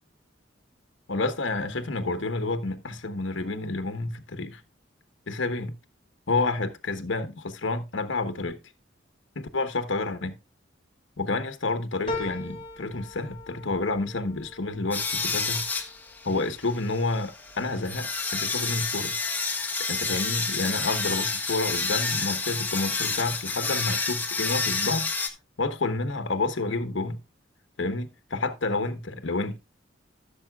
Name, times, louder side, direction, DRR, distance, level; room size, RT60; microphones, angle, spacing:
voice 1, 1.1-4.6 5.3-5.8 6.3-8.6 9.4-10.4 11.2-15.7 16.2-19.1 19.9-25.1 25.6-27.2 27.8-29.6, left 3 dB, 75° left, 1.1 m, -29 dB
sound 1, 12.1-16.8 17.3-18.0 18.4-18.5, left 2 dB, 30° left, 2.3 m, -40 dB
sound 2, 14.9-25.3, left 4 dB, 10° left, 1.5 m, -29 dB
15.5 x 7.0 x 2.3 m
head